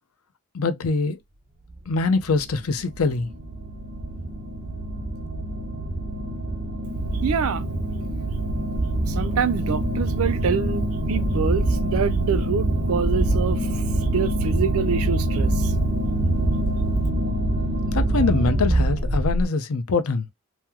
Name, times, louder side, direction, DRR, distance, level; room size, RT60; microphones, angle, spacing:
voice 1, 0.5-1.2 1.9-3.3 17.9-20.3, left 4 dB, 80° left, 0.6 m, -23 dB
sound 1, 1.9-19.5, right 1 dB, 30° right, 0.6 m, -24 dB
voice 2, 7.1-7.6 9.1-13.8 14.1-15.7, right 6 dB, 80° right, 0.4 m, -26 dB
2.9 x 2.0 x 3.5 m
head